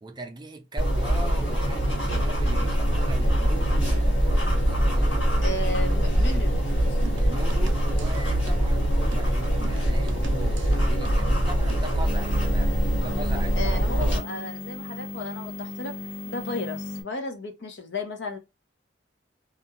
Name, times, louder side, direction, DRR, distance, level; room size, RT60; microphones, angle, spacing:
voice 1, 0.0-5.4 7.2-14.2, right 2 dB, 25° right, 0.5 m, -40 dB
sound 1, 0.8-14.2, equal, 85° left, 1.6 m, -23 dB
voice 2, 5.4-6.5 13.6-16.0 16.3-18.4, left 2 dB, 70° left, 0.7 m, -33 dB
sound 2, 6.9-11.9, right 5 dB, 85° right, 0.4 m, -45 dB
sound 3, 12.0-17.0, left 2 dB, 40° left, 0.9 m, -36 dB
2.5 x 2.2 x 2.9 m
head